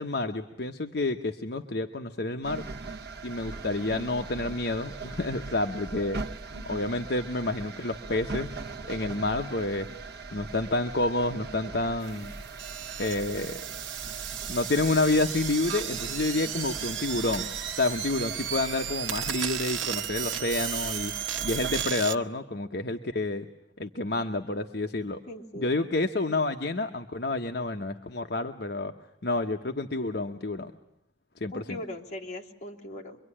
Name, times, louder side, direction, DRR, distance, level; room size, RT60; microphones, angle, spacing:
voice 1, 0.0-2.6 3.2-6.2 6.6-8.6 8.8-9.9 10.3-12.3 13.0-13.6 14.5-17.4 17.7-23.5 23.8-25.2 25.5-28.9 29.2-30.7 31.4-31.8, left 2 dB, 55° left, 5 dB, 1.0 m, -29 dB
sound 1, 2.4-21.9, right 4 dB, 55° right, 1.0 m, -41 dB
sound 2, 12.0-22.1, right 9 dB, 80° right, 1.2 m, -34 dB
voice 2, 25.3-25.7 31.5-33.2, left 1 dB, 40° left, -1 dB, 3.3 m, -40 dB
25.5 x 23.5 x 9.9 m, 0.78 s
head